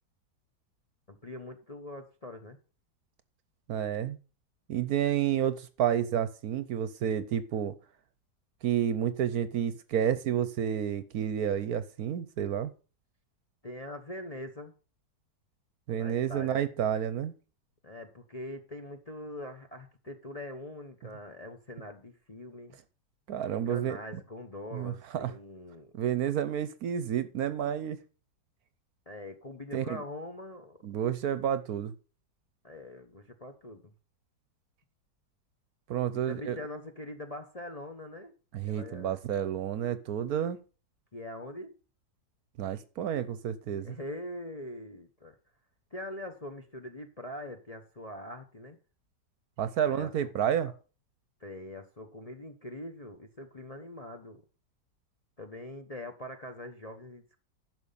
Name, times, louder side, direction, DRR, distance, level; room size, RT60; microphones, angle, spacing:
voice 1, 1.1-2.6 13.6-14.7 16.0-16.6 17.8-22.8 23.5-25.9 29.1-30.8 32.6-33.9 36.1-38.3 38.6-39.2 41.1-41.8 43.8-45.4 45.9-48.8 49.8-50.7 51.4-54.4 55.4-57.4, left 1 dB, 30° left, 0.8 m, -43 dB
voice 2, 3.7-4.2 4.7-7.7 8.6-12.7 15.9-17.3 23.3-24.0 24.7-24.9 25.2-25.3 26.0-28.0 29.7-30.0 30.8-31.9 35.9-36.6 38.5-40.6 42.6-44.0 49.6-50.7, right 9 dB, 65° right, 1.1 m, -30 dB
11.0 x 6.2 x 5.4 m
omnidirectional pair, 1.9 m